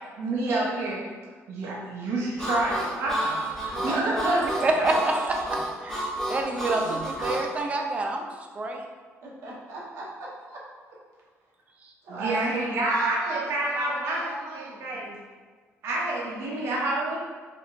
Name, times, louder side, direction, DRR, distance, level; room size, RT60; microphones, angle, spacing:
voice 1, 0.2-1.1 1.5-4.9 6.9-7.4 12.1-14.2 14.5-15.2 15.8-17.2, right 2 dB, 60° right, -4 dB, 0.8 m, -28 dB
Harmonica, 2.4-7.5, right 1 dB, 10° left, 0.8 m, -31 dB
voice 2, 4.4-5.4 5.8-8.3 8.5-8.8, right 2 dB, 25° right, 2 dB, 0.5 m, -27 dB
voice 3, 9.2-10.6 12.0-15.0, right 2 dB, 85° right, -5 dB, 1.1 m, -35 dB
4.7 x 3.7 x 2.5 m, 1.5 s
cardioid pair, 165°, 5 cm